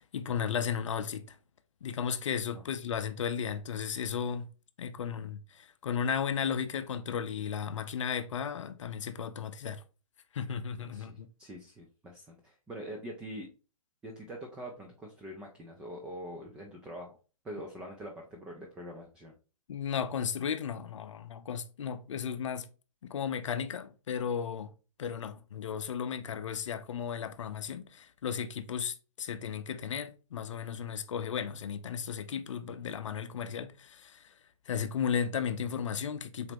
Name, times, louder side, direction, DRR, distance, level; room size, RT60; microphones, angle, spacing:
voice 1, 0.0-1.4 1.8-4.5 4.8-9.8 10.3-11.3 19.7-22.7 23.0-24.7 25.0-34.3 34.7-36.5, left 7 dB, 60° left, 0.5 m, -35 dB
voice 2, 10.9-13.5 14.0-17.2 17.4-19.3, equal, 5° right, 0.3 m, -44 dB
4.2 x 2.8 x 3.3 m
figure-of-eight pair, 120°, 18 cm